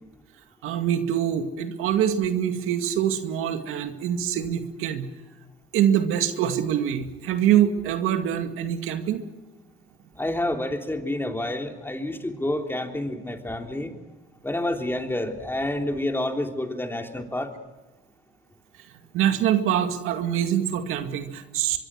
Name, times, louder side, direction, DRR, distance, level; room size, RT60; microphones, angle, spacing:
voice 1, 0.6-5.1 5.7-9.2 19.1-21.8, right 10 dB, 80° right, 6 dB, 2.2 m, -24 dB
voice 2, 10.2-13.9 14.4-17.5, left 1 dB, 10° left, 3 dB, 3.4 m, -28 dB
24.0 x 23.5 x 6.4 m, 1.1 s
supercardioid pair, 80°, 21 cm